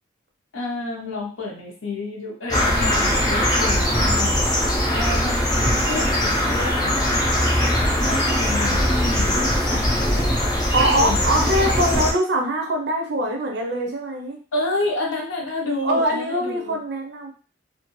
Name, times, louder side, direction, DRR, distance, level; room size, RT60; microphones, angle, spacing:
voice 1, 0.5-4.6 4.9-7.0 8.0-10.3 10.7-11.3 14.5-16.8, left 2 dB, 80° left, -2 dB, 0.8 m, -29 dB
sound 1, 2.5-12.1, equal, 20° left, 0.6 m, -21 dB
voice 2, 10.5-14.4 15.8-17.3, right 1 dB, 55° right, 2 dB, 0.5 m, -23 dB
2.5 x 2.3 x 3.0 m, 0.38 s
head